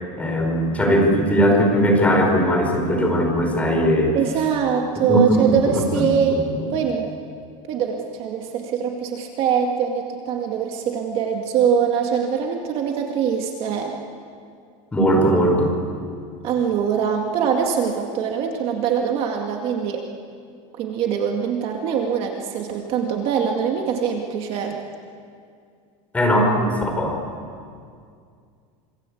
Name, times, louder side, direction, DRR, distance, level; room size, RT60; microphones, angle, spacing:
voice 1, 0.2-4.2 5.1-5.2 5.5-6.4 14.9-15.7 26.1-27.2, equal, 10° left, 1 dB, 4.8 m, -19 dB
voice 2, 4.1-6.4 6.7-7.1 7.7-14.0 16.4-20.1 20.8-24.8, right 7 dB, 35° right, 2 dB, 2.1 m, -23 dB
27.5 x 24.5 x 8.6 m, 2.3 s
cardioid pair, 175°, 16 cm